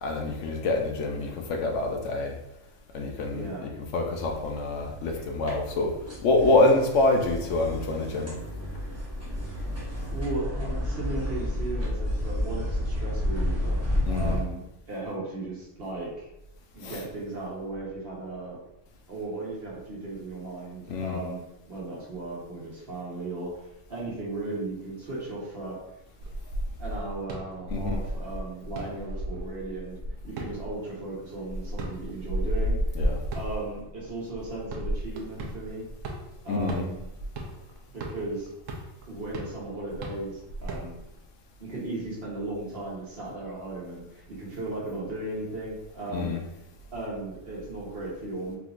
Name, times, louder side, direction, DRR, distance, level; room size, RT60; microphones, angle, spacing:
voice 1, 0.0-2.4 2.9-5.9 6.2-8.3 14.1-14.4 16.8-17.0 20.9-21.2 27.7-28.0 32.9-33.2 36.5-36.9 46.1-46.4, left 2 dB, 75° left, 2 dB, 0.9 m, -26 dB
voice 2, 3.3-3.7 10.1-13.8 14.1-14.6 14.9-16.3 16.7-18.6 19.1-21.4 21.7-25.8 26.8-30.0 30.2-32.8 33.3-35.9 36.4-37.0 37.9-38.5 39.1-41.0 41.6-46.3 46.9-48.6, right 2 dB, 50° right, -5 dB, 1.1 m, -36 dB
sound 1, 4.2-14.4, left 1 dB, 15° right, 0.7 m, -31 dB
sound 2, 26.2-41.2, equal, 85° right, 1.0 m, -34 dB
3.5 x 2.9 x 2.4 m, 0.92 s
omnidirectional pair, 1.3 m